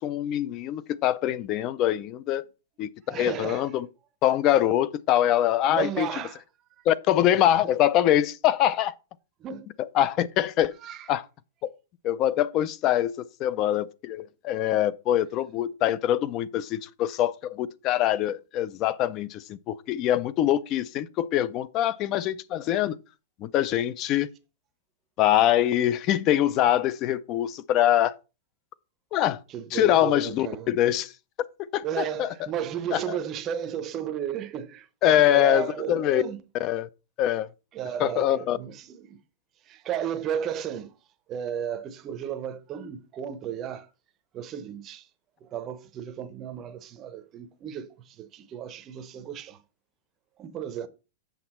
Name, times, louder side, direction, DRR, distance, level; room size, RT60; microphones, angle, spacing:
voice 1, 0.0-2.4 2.8-3.9 4.2-6.1 6.9-8.9 9.9-10.7 11.1-11.2 11.6-11.7 12.0-23.0 23.4-24.3 25.2-28.2 29.1-29.4 29.7-31.1 31.7-32.3 32.9-33.0 35.0-36.2 36.6-36.9 37.2-37.5 38.0-38.6, left 12 dB, 25° left, 0.4 m, -24 dB
voice 2, 3.1-3.7 5.6-6.4 7.6-7.8 9.4-9.7 10.8-11.1 29.5-30.7 31.8-36.4 37.7-39.2 39.7-41.0 41.3-43.9 44.3-45.1 45.4-49.6 50.4-50.9, right 9 dB, 20° right, 0.7 m, -34 dB
7.9 x 6.8 x 4.3 m
supercardioid pair, 180°, 0 cm